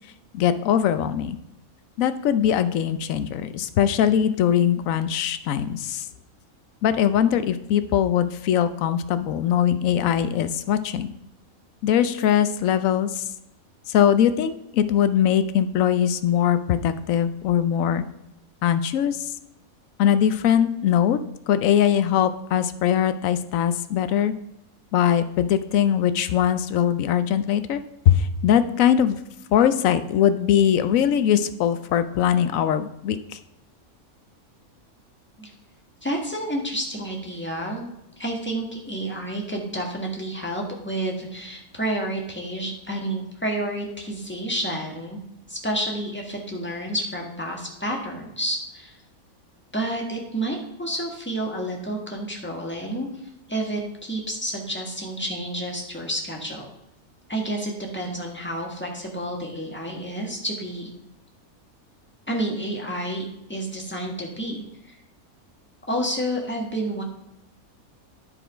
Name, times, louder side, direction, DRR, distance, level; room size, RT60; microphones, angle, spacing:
voice 1, 0.3-1.4 2.0-6.1 6.8-11.1 11.8-13.2 13.9-18.0 18.6-19.3 20.0-21.2 21.5-24.3 24.9-29.2 29.5-33.2, left 9 dB, 75° left, 12 dB, 1.0 m, -21 dB
voice 2, 36.0-37.9 38.2-45.2 45.5-49.0 49.7-53.1 53.5-56.7 57.3-60.9 62.3-64.9 65.9-67.0, right 1 dB, 10° left, -1 dB, 1.4 m, -30 dB
9.8 x 4.7 x 5.0 m, 0.84 s
omnidirectional pair, 1.5 m